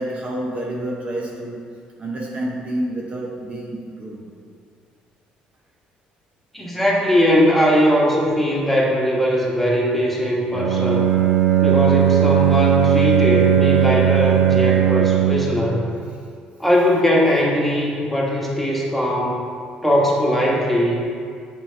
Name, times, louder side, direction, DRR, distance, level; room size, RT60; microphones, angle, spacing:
voice 1, 0.0-1.7 2.0-4.3, right 1 dB, 40° right, -1 dB, 0.8 m, -28 dB
voice 2, 6.5-11.1 11.6-15.8 16.6-19.4 19.8-21.0, equal, 5° left, -4 dB, 1.6 m, -19 dB
Bowed string instrument, 10.5-15.6, right 10 dB, 70° right, 0.7 m, -17 dB
7.2 x 3.7 x 5.2 m, 2.3 s
supercardioid pair, 75°, 3 cm